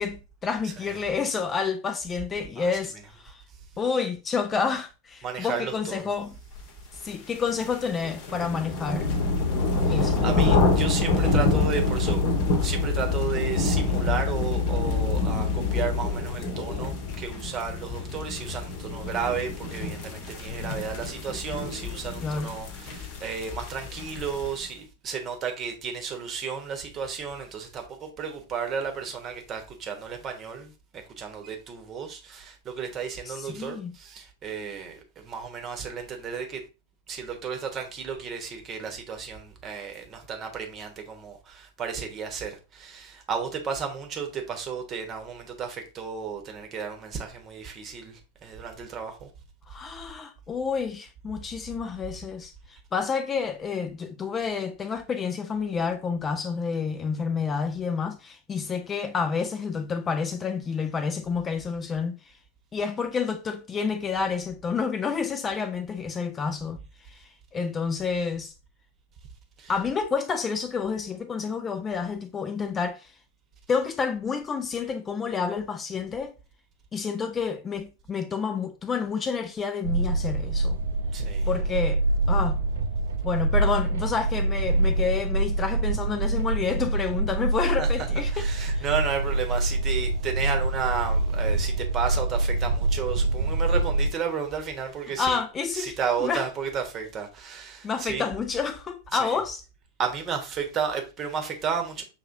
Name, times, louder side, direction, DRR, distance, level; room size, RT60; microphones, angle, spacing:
voice 1, 0.0-3.4 3.8-6.3 7.0-9.1 9.9-10.2 22.2-22.6 33.3-33.9 49.7-62.3 62.7-66.8 67.1-68.5 69.7-73.1 73.7-76.3 76.9-80.8 81.5-82.0 82.3-82.6 83.2-88.4 88.7-88.8 95.2-96.4 97.8-99.6, left 5 dB, 20° left, 0.4 m, -29 dB
voice 2, 0.6-1.0 2.6-2.7 3.5-3.6 5.2-6.1 9.9-12.2 12.6-36.6 37.1-49.3 69.6-69.7 81.1-81.5 87.8-87.9 88.3-95.4 95.7-98.3 99.1-99.4 100.0-102.0, right 6 dB, 30° right, 1.0 m, -33 dB
sound 1, 7.1-24.6, left 3 dB, 45° left, 1.0 m, -28 dB
Vehicle, 9.0-16.3, left 4 dB, 65° left, 0.7 m, -28 dB
sound 2, 79.8-94.1, right 2 dB, 60° right, 0.4 m, -25 dB
5.7 x 2.9 x 2.5 m
figure-of-eight pair, 90°, 0 cm